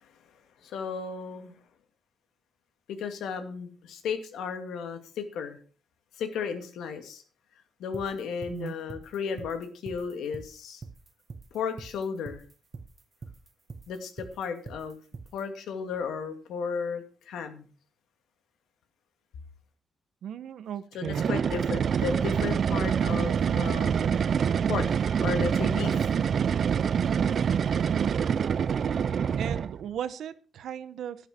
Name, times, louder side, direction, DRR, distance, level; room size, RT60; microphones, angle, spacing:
voice 1, 0.6-1.5 2.9-5.6 6.2-7.2 7.8-10.8 11.5-12.4 13.9-15.0 15.3-17.7 20.9-24.1 24.7-24.9 25.2-26.1, left 6 dB, 90° left, 7 dB, 2.3 m, -34 dB
sound 1, 7.9-15.4, right 4 dB, 35° right, 1.0 m, -44 dB
voice 2, 20.2-21.2 29.4-31.2, right 9 dB, 75° right, 14 dB, 1.1 m, -36 dB
sound 2, 21.1-29.8, right 7 dB, 55° right, 0.5 m, -26 dB
11.5 x 11.5 x 4.4 m, 0.38 s
cardioid pair, 105°, 0 cm